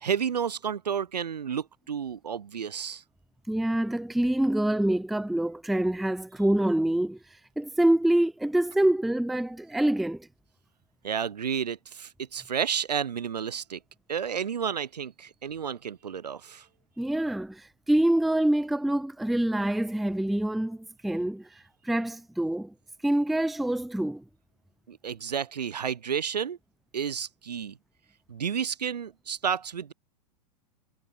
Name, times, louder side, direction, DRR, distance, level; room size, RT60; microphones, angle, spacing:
voice 1, 0.0-3.0 11.0-13.8 14.1-16.7 24.9-26.6 26.9-27.8 28.3-29.9, right 7 dB, 75° right, 0.7 m, -31 dB
voice 2, 3.5-7.2 7.6-10.3 17.0-17.6 17.9-21.5 21.8-22.7 23.0-24.2, right 1 dB, ahead, 0.4 m, -25 dB
figure-of-eight pair, 100°, 21 cm